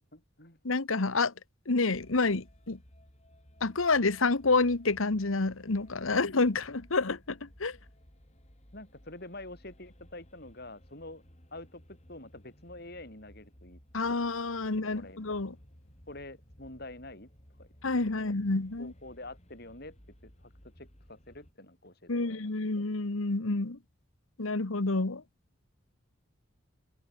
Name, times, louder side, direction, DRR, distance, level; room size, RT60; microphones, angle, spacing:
voice 1, 0.0-0.6 8.7-11.2 11.5-13.8 14.8-15.3 16.1-17.3 17.6-17.7 18.2-18.4 18.8-20.0 20.2-22.5, left 2 dB, 50° left, 6.4 m, -47 dB
voice 2, 0.6-1.3 1.7-2.8 3.6-7.8 13.9-15.5 17.8-18.9 22.1-23.8 24.4-25.2, left 3 dB, 80° left, 1.3 m, -28 dB
sound 1, 1.9-21.5, equal, 30° left, 5.1 m, -57 dB
head